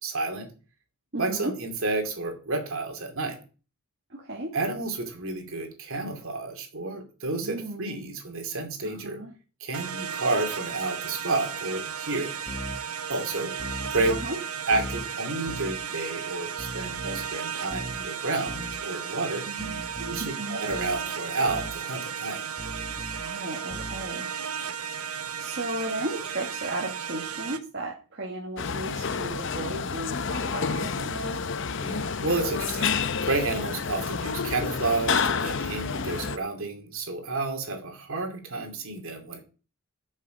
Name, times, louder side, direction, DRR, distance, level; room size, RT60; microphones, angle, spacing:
voice 1, 0.0-0.5 1.2-3.4 4.5-9.2 9.6-12.4 13.1-13.6 13.9-14.2 14.7-19.5 19.9-22.4 31.8-32.9 33.2-39.4, right 3 dB, 65° right, 4 dB, 2.7 m, -30 dB
voice 2, 1.1-1.5 4.1-4.6 7.4-8.1 8.8-9.3 14.1-14.4 19.5-19.9 20.2-20.6 23.1-24.3 25.1-31.4, right 1 dB, 50° right, -2 dB, 1.8 m, -35 dB
sound 1, 9.7-27.6, right 7 dB, 80° right, 1.0 m, -35 dB
sound 2, 12.5-12.8 13.6-14.3 14.7-15.1 15.5-15.8 16.6-17.3 17.7-18.0 18.5-18.8 19.6-20.3 20.7-21.0 21.5-21.8 22.6-23.3 23.7-24.1, equal, 20° left, 1.3 m, -38 dB
sound 3, 28.6-36.4, left 5 dB, 55° left, 0.7 m, -29 dB
12.5 x 6.4 x 5.2 m, 0.35 s
head